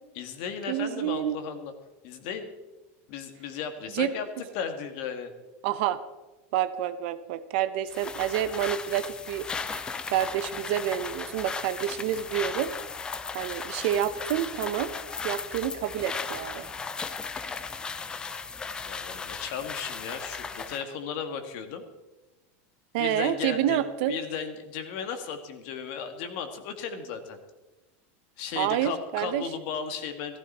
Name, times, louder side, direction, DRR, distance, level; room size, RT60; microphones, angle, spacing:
voice 1, 0.2-1.7 2.0-2.5 3.1-5.3 18.8-21.8 23.0-23.8 24.1-27.4 28.4-30.4, left 7 dB, 50° left, 7 dB, 1.9 m, -35 dB
voice 2, 0.7-1.4 3.9-4.1 5.6-6.0 6.5-9.8 10.1-12.7 13.3-14.9 15.2-16.7 22.9-24.2 28.6-29.5, right 11 dB, 55° right, 12 dB, 0.9 m, -28 dB
sound 1, 7.9-20.9, left 5 dB, 10° left, 0.5 m, -36 dB
15.5 x 15.0 x 4.3 m, 1.1 s
supercardioid pair, 170°, 7 cm